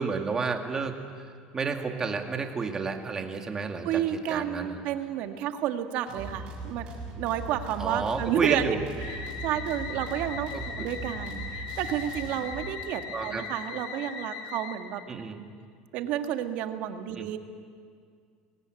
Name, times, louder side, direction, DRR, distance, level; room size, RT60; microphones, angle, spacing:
voice 1, 0.0-4.0 4.3-4.8 7.8-8.9 10.5-10.9 13.1-13.5 15.1-15.4 17.1-17.3, right 4 dB, 20° right, 4 dB, 2.1 m, -31 dB
voice 2, 3.8-6.8 7.2-8.7 9.0-10.5 10.8-15.5 15.9-17.4, right 10 dB, 60° right, 7 dB, 1.6 m, -31 dB
sound 1, 6.1-12.8, right 2 dB, 40° right, 7.1 m, -40 dB
sound 2, 9.0-15.1, left 5 dB, 75° left, 3.7 m, -39 dB
22.5 x 18.0 x 9.6 m, 2.1 s
supercardioid pair, 135°, 3 cm